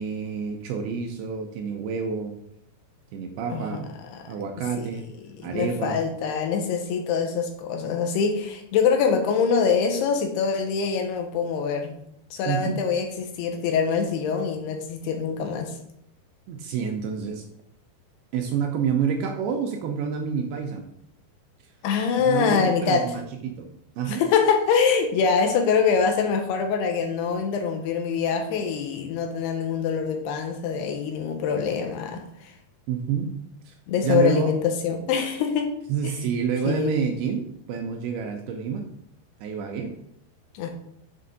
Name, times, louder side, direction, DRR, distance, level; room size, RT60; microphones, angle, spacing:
voice 1, 0.0-2.3 3.1-3.9 4.3-5.0 5.4-6.0 12.5-12.8 16.5-17.4 18.3-20.8 22.2-24.2 32.9-33.3 33.7-33.8 34.0-34.5 35.9-38.9 39.4-39.9, right 6 dB, 85° right, 3 dB, 2.3 m, -28 dB
voice 2, 5.4-12.0 12.3-15.8 21.8-23.1 24.1-32.5 33.9-35.7 36.0-36.1 36.7-36.9 40.5-40.7, left 6 dB, 80° left, 5 dB, 2.7 m, -24 dB
7.5 x 4.9 x 4.0 m, 0.74 s
omnidirectional pair, 5.0 m